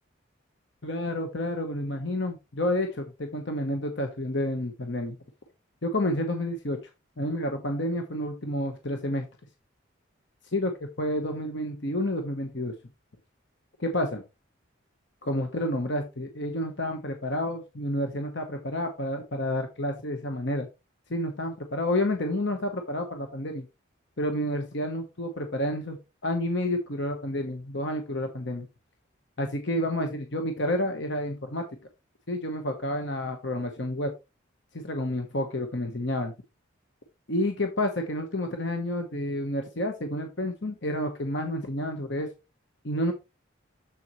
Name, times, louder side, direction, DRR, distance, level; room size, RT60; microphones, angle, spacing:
voice 1, 0.8-5.2 5.8-6.9 7.2-9.2 10.5-10.7 11.0-12.7 13.8-14.2 15.2-20.7 21.1-23.6 24.2-26.0 26.2-28.7 29.4-31.6 32.3-34.1 34.7-36.3 37.3-42.3 42.8-43.1, left 1 dB, 60° left, 5 dB, 1.2 m, -29 dB
7.4 x 7.0 x 3.1 m, 0.26 s
head